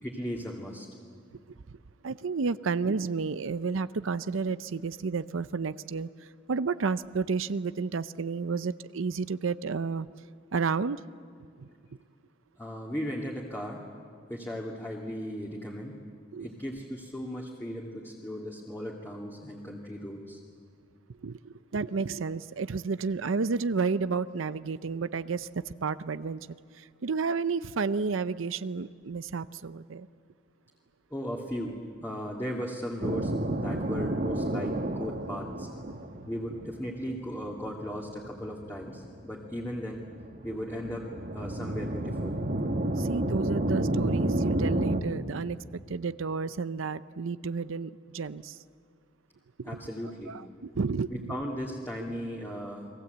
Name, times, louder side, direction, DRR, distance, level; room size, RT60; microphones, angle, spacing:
voice 1, 0.0-0.9 12.6-13.8 14.3-16.0 16.4-20.4 31.1-33.3 33.6-35.7 36.3-40.1 40.4-42.4 49.6-50.3 51.1-52.9, equal, 10° left, -2 dB, 2.3 m, -37 dB
voice 2, 2.0-10.1 10.5-11.0 11.6-11.7 16.3-16.5 21.1-26.5 26.7-30.1 36.2-36.3 43.0-48.6 49.7-49.8 50.3-51.4, right 4 dB, 75° right, 14 dB, 0.6 m, -31 dB
sound 1, 33.0-45.0, right 1 dB, 50° right, 1.6 m, -30 dB
29.5 x 21.5 x 8.0 m, 2.1 s
head